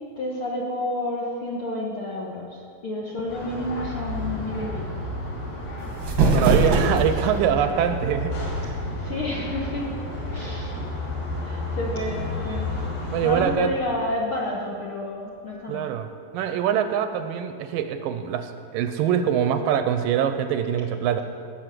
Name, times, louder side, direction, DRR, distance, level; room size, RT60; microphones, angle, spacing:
voice 1, 0.2-5.0 6.2-6.9 8.9-9.9 10.3-10.9 11.4-12.7 13.2-15.9, left 1 dB, 60° left, -3 dB, 1.4 m, -30 dB
sound 1, 3.3-13.5, left 1 dB, 80° left, 4.3 m, -31 dB
sound 2, 5.8-7.4, right 3 dB, 55° right, 1.5 m, -21 dB
voice 2, 6.3-8.8 11.3-11.4 13.1-13.7 15.7-16.1 16.3-21.2, right 9 dB, 85° right, 9 dB, 2.3 m, -24 dB
17.5 x 6.3 x 7.6 m, 2.4 s
omnidirectional pair, 4.2 m